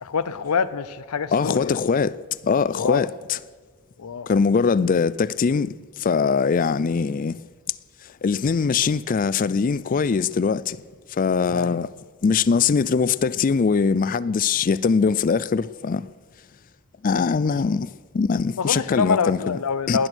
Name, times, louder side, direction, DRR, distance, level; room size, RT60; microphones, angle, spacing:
voice 1, 0.0-1.8 2.7-3.1 4.0-4.3 11.5-11.8 18.6-20.1, left 5 dB, 85° left, 0.6 m, -25 dB
voice 2, 1.3-2.2 2.4-3.4 4.3-7.4 8.2-10.8 11.1-11.9 12.2-16.1 17.0-19.6 19.9-20.1, left 5 dB, 40° left, 0.3 m, -22 dB
19.0 x 11.0 x 6.2 m
head